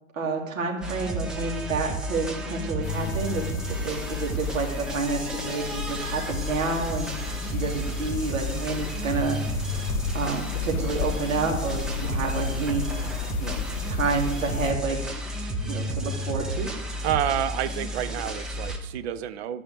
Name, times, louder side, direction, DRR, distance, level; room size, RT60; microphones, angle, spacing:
voice 1, 0.1-9.8 10.1-12.8 13.4-13.6 13.9-15.1 15.6-16.7, right 4 dB, 65° right, 0 dB, 3.1 m, -29 dB
sound 1, 0.8-18.8, right 1 dB, ahead, 0.3 m, -32 dB
sound 2, 2.8-14.7, left 8 dB, 70° left, 0.6 m, -34 dB
voice 2, 17.0-19.6, right 10 dB, 45° right, 11 dB, 0.9 m, -29 dB
11.5 x 5.5 x 8.5 m, 0.88 s
figure-of-eight pair, 105°, 42 cm